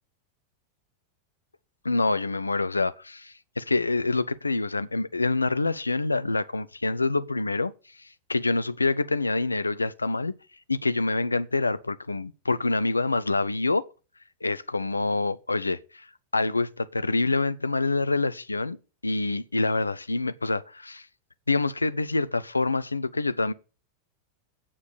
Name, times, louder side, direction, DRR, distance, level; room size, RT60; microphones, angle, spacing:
voice 1, 1.8-7.7 8.3-10.3 10.7-13.9 14.4-16.1 16.3-18.8 19.0-21.1 21.5-23.5, left 3 dB, 80° left, 0.4 m, -26 dB
8.7 x 7.0 x 6.3 m
figure-of-eight pair, 90°, 0 cm